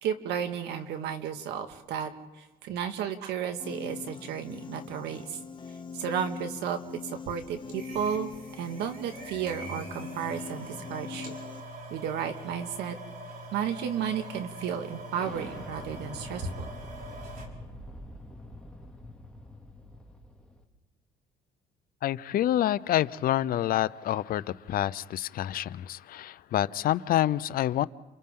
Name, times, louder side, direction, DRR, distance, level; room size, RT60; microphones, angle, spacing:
voice 1, 0.0-2.1 2.6-5.2 5.9-6.8 7.0-8.3 8.6-11.3 11.9-13.0 13.5-16.7, right 8 dB, 85° right, 2.0 m, -33 dB
Piano, 3.6-11.6, left 5 dB, 30° left, 1.4 m, -42 dB
sound 1, 7.7-17.5, right 1 dB, 55° right, 4.9 m, -43 dB
Explosion, 15.1-20.6, left 1 dB, 5° left, 2.6 m, -45 dB
voice 2, 22.0-27.9, left 12 dB, 60° left, 0.7 m, -27 dB
30.0 x 28.0 x 3.8 m
cardioid pair, 110°, 17 cm